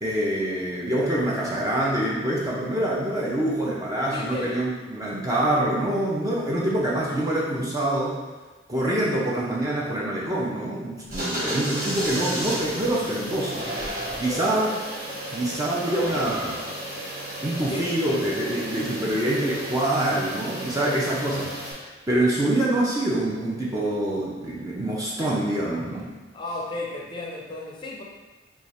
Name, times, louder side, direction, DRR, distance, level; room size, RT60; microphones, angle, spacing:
voice 1, 0.0-8.2 8.7-13.7 14.2-14.7 15.3-16.6 17.4-21.8 22.1-26.1, right 1 dB, 20° right, -5 dB, 0.5 m, -25 dB
voice 2, 4.1-4.7 14.1-14.5 17.7-17.9 26.3-28.0, left 2 dB, 25° left, -2 dB, 0.5 m, -34 dB
sound 1, 11.1-21.7, right 1 dB, 50° right, 0.9 m, -33 dB
3.2 x 2.3 x 4.1 m, 1.2 s
head